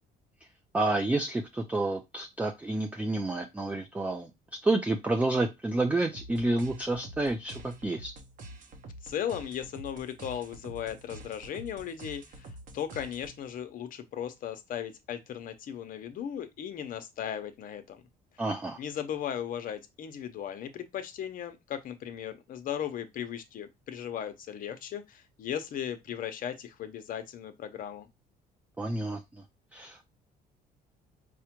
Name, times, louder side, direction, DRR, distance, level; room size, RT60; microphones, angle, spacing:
voice 1, 0.7-4.3 4.6-8.1 18.4-18.8 28.8-29.4 29.7-30.0, right 2 dB, 10° right, 0.3 m, -29 dB
sound 1, 6.1-13.6, right 1 dB, 50° right, 0.8 m, -47 dB
voice 2, 9.0-18.0 18.8-28.1, left 9 dB, 55° left, 0.7 m, -37 dB
4.7 x 2.1 x 2.9 m
cardioid pair, 110°, 17 cm